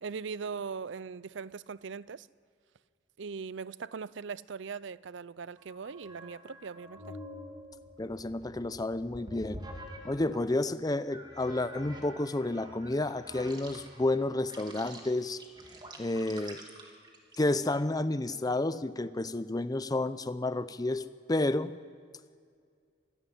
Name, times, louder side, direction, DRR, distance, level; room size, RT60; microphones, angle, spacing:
voice 1, 0.0-2.3 3.2-7.2, right 5 dB, 70° right, 0.5 m, -40 dB
sound 1, 5.6-10.5 11.1-17.7, equal, 25° right, 2.7 m, -48 dB
voice 2, 8.0-9.6 10.0-15.4 16.0-16.6 17.4-21.8, left 2 dB, 20° left, 0.6 m, -31 dB
25.5 x 11.5 x 10.0 m
head